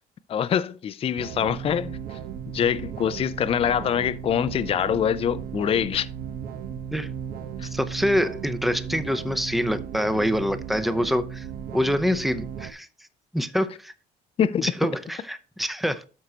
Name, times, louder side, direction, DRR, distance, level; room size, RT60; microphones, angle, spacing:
voice 1, 0.3-2.0 2.5-6.1 7.6-7.7 14.4-14.6, left 8 dB, 35° left, 0.4 m, -24 dB
sound 1, 1.2-12.7, right 8 dB, 60° right, 1.0 m, -36 dB
voice 2, 7.7-11.5 11.7-12.9 13.3-13.9 14.6-16.0, equal, ahead, 0.7 m, -25 dB
12.5 x 4.7 x 2.8 m
cardioid pair, 110°, 17 cm